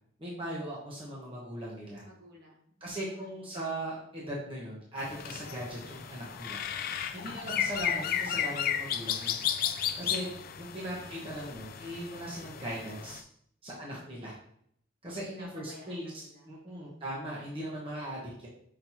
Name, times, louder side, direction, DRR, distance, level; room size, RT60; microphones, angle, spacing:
voice 1, 0.2-2.0 2.8-6.6 7.1-9.4 10.0-10.2 10.6-13.2 13.6-14.3 15.0-16.1 16.5-18.5, right 1 dB, 30° right, -5 dB, 1.1 m, -39 dB
voice 2, 2.0-3.6 10.0-11.2 13.7-14.3 15.3-17.1, equal, 55° right, -3 dB, 1.4 m, -55 dB
sound 1, 5.0-13.2, left 9 dB, 50° left, 0.3 m, -34 dB
5.8 x 3.2 x 2.9 m, 0.66 s
head